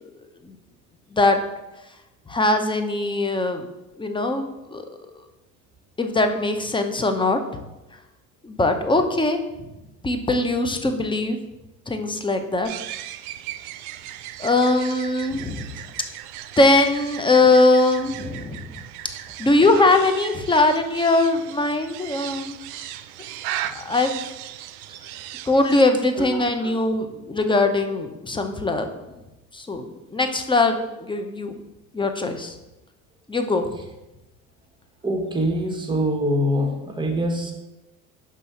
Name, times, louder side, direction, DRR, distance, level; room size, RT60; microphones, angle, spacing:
voice 1, 2.3-3.7 4.0-4.8 6.0-7.4 8.4-9.4 10.0-11.4 11.9-12.7 14.4-15.7 16.6-18.7 19.4-22.8 23.7-24.2 25.5-28.9 29.5-29.9 30.1-31.6 31.9-32.5 33.3-33.7, left 2 dB, 10° left, 7 dB, 0.7 m, -21 dB
sound 1, 12.6-25.9, right 12 dB, 75° right, 0.5 m, -37 dB
voice 2, 26.2-26.8 35.0-37.5, equal, 10° right, 3 dB, 1.2 m, -24 dB
5.5 x 3.7 x 5.5 m, 0.99 s
hypercardioid pair, 80°, 43 cm